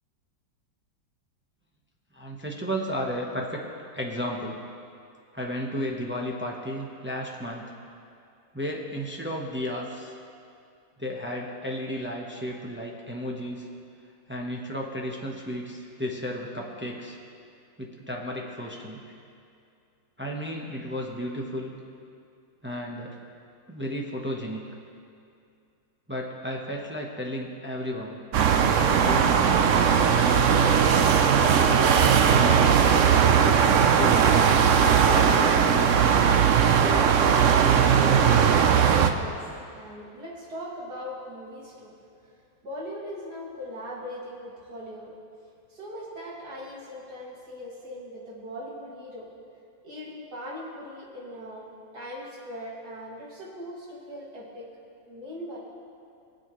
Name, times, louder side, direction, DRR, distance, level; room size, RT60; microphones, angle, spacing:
voice 1, 2.1-3.6 3.9-4.6 5.3-7.7 8.5-10.1 11.0-13.7 14.3-17.2 17.8-19.1 20.2-21.7 22.6-23.1 23.7-24.6 26.1-28.2 28.8-29.6 29.9-32.8 33.4-36.2, equal, 10° right, -1 dB, 0.5 m, -33 dB
sound 1, 28.3-39.1, right 7 dB, 80° right, 0.7 m, -19 dB
voice 2, 37.9-38.8 39.1-39.4 39.7-41.9 42.6-45.1 45.7-49.3 49.8-51.7 51.9-54.7 55.1-55.6, equal, 55° right, -5 dB, 2.8 m, -39 dB
23.0 x 7.9 x 3.1 m, 2.5 s
omnidirectional pair, 2.0 m